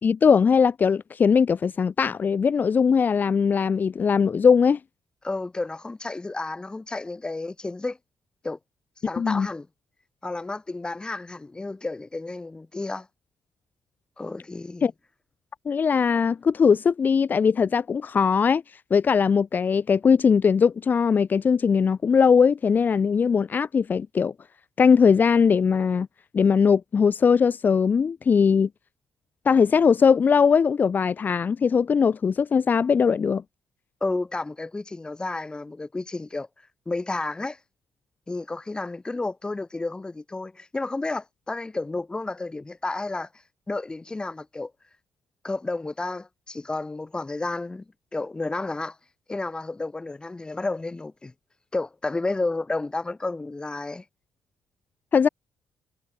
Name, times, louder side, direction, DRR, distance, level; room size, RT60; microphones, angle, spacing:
voice 1, 0.0-4.8 9.2-9.5 14.8-14.9 15.6-18.6 18.9-24.3 24.8-26.1 26.3-28.7 29.4-33.4 55.1-55.3, left 6 dB, 45° left, 4.4 m, -20 dB
voice 2, 5.2-8.0 8.4-8.6 9.0-9.7 10.2-13.1 14.2-14.9 34.0-36.5 36.9-37.6 38.3-43.3 43.7-44.7 45.4-47.8 48.1-49.0 49.3-51.3 51.7-54.0, left 2 dB, 20° left, 7.4 m, -31 dB
cardioid pair, 90°, 4 cm